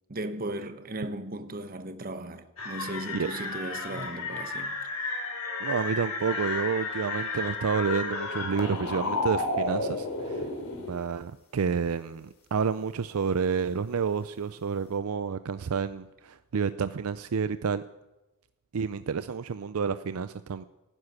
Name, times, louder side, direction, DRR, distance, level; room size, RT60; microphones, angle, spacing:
voice 1, 0.1-4.8, right 1 dB, 40° right, 1.0 m, -36 dB
sound 1, 2.6-10.9, left 3 dB, 80° left, 3.0 m, -32 dB
voice 2, 5.6-10.5 10.8-17.8 18.7-20.6, right 6 dB, 80° right, 0.5 m, -29 dB
11.5 x 11.0 x 9.8 m
head